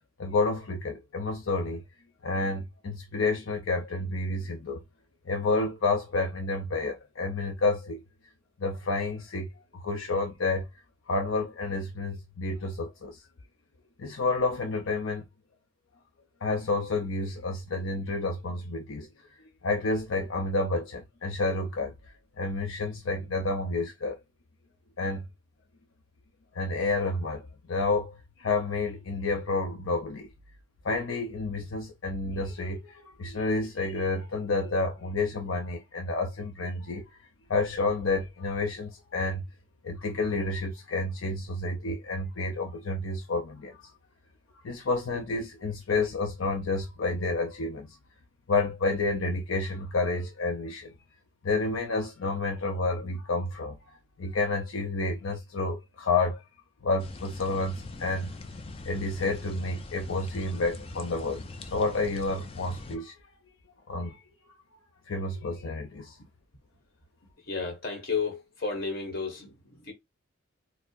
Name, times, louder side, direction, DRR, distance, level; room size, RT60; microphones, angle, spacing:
voice 1, 0.2-1.8 2.2-4.8 5.3-8.0 8.6-9.5 9.7-10.7 11.1-13.2 14.0-15.2 16.4-19.1 19.6-21.9 22.4-24.2 25.0-25.2 26.5-30.3 30.8-37.0 37.5-39.5 39.8-43.8 44.6-47.9 48.5-50.9 51.4-56.4 56.8-58.3 58.8-63.1 63.9-64.2 65.1-66.2, left 3 dB, 80° left, 0.6 m, -30 dB
sound 1, 57.0-63.0, left 2 dB, 30° left, 0.4 m, -42 dB
voice 2, 67.4-69.9, left 4 dB, 50° left, 1.2 m, -33 dB
4.4 x 2.0 x 2.4 m
head